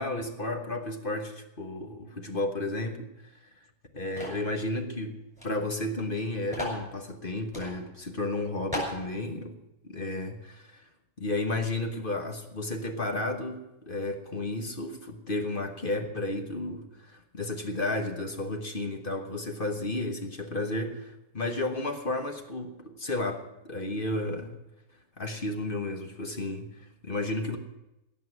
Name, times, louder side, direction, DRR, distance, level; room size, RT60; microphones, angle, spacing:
voice 1, 0.0-3.3 3.9-5.2 5.4-9.6 9.8-10.9 11.2-24.6 25.2-27.6, left 2 dB, 35° left, 5 dB, 1.3 m, -33 dB
sound 1, 4.2-4.5 5.4-5.5 5.7-5.8 6.5-6.8 7.5-7.7 8.2-8.3 8.7-9.0, left 1 dB, 15° left, 5.5 m, -34 dB
17.0 x 6.5 x 9.7 m, 0.94 s
omnidirectional pair, 1.7 m